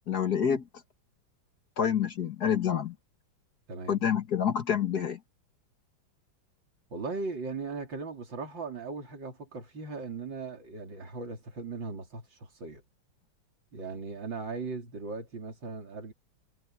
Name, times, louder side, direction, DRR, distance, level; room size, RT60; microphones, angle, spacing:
voice 1, 0.1-0.6 1.8-2.9 3.9-5.2, left 8 dB, 55° left, 2.0 m, -27 dB
voice 2, 3.7-4.0 6.9-12.8 13.7-16.1, right 4 dB, 65° right, 4.1 m, -38 dB
omnidirectional pair, 2.2 m